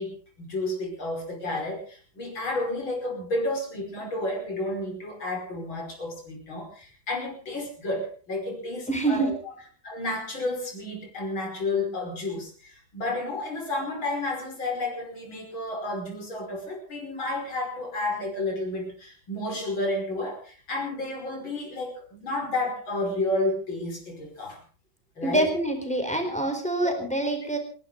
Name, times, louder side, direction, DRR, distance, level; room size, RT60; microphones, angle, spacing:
voice 1, 0.0-9.5 9.8-24.6 25.2-25.5 26.8-27.0, left 2 dB, 80° left, 2 dB, 6.3 m, -31 dB
voice 2, 8.9-9.3 25.2-27.6, right 2 dB, 5° left, 4 dB, 4.3 m, -26 dB
28.5 x 12.0 x 4.0 m, 0.40 s
omnidirectional pair, 2.1 m